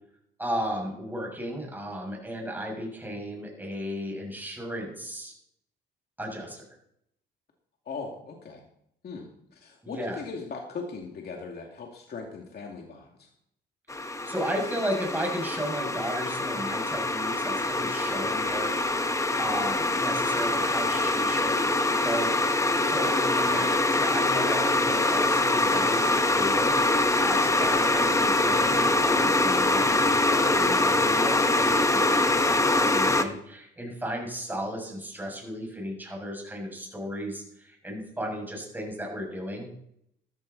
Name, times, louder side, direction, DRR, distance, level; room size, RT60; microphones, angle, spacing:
voice 1, 0.4-5.3 6.2-6.6 9.8-10.2 14.0-18.9 19.4-22.3 22.9-26.7 27.2-39.7, equal, 10° right, 0 dB, 6.9 m, -34 dB
voice 2, 7.9-8.6 9.0-13.3 27.4-27.6, left 4 dB, 55° left, 0 dB, 2.5 m, -39 dB
sound 1, 13.9-33.2, left 2 dB, 15° left, 1.2 m, -24 dB
14.0 x 13.5 x 4.1 m, 0.73 s
cardioid pair, 90°, 20 cm